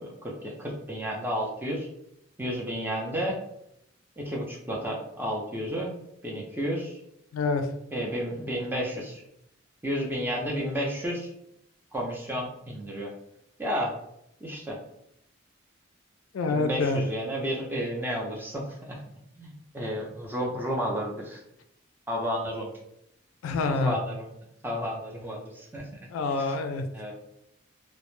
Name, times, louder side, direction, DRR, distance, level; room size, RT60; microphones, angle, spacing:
voice 1, 0.0-1.9 2.4-3.4 4.2-6.0 6.2-6.9 7.9-9.2 9.8-11.3 11.9-13.1 13.6-13.9 14.4-14.8 16.5-19.0 19.4-21.4 22.1-22.7 23.6-24.3 24.6-25.9 26.4-26.6 26.9-27.1, equal, 10° right, -2 dB, 0.4 m, -32 dB
voice 2, 7.3-7.7 16.3-17.1 23.4-24.0 26.1-26.8, left 3 dB, 90° left, 7 dB, 0.3 m, -26 dB
2.0 x 2.0 x 3.0 m, 0.77 s
head